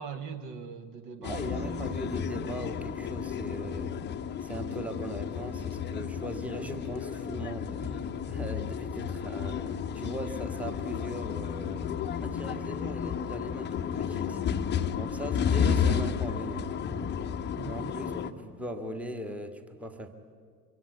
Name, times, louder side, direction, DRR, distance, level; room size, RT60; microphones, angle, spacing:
voice 1, 0.0-1.9 7.8-8.0 15.9-16.0 17.5-18.2, right 6 dB, 40° right, 10 dB, 1.5 m, -42 dB
sound 1, 1.2-18.3, left 7 dB, 20° left, 1.0 m, -32 dB
voice 2, 1.2-3.9 4.4-8.0 8.3-11.9 12.2-14.5 14.9-16.7 17.6-20.1, right 1 dB, 5° right, 7 dB, 1.5 m, -39 dB
25.5 x 23.5 x 8.3 m, 2.1 s
figure-of-eight pair, 80°, 47 cm